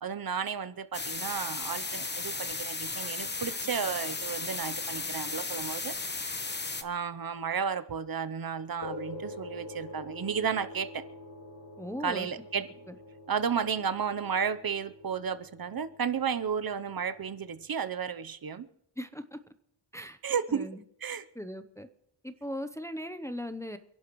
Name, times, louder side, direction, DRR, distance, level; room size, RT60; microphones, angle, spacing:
voice 1, 0.0-5.9 6.8-11.0 12.0-12.7 13.3-18.7 20.2-20.7 21.0-21.3, right 7 dB, 45° right, 13 dB, 0.8 m, -33 dB
sound 1, 0.9-6.8, left 3 dB, 20° left, 1.1 m, -35 dB
sound 2, 8.8-17.6, left 2 dB, 55° left, 4.1 m, -46 dB
voice 2, 11.8-12.3 12.9-13.0 19.0-19.4 19.9-20.2 20.5-20.8 21.3-21.9 22.2-23.8, equal, 5° left, 9 dB, 0.7 m, -38 dB
29.0 x 11.5 x 3.1 m, 0.80 s
wide cardioid pair, 150°, 48 cm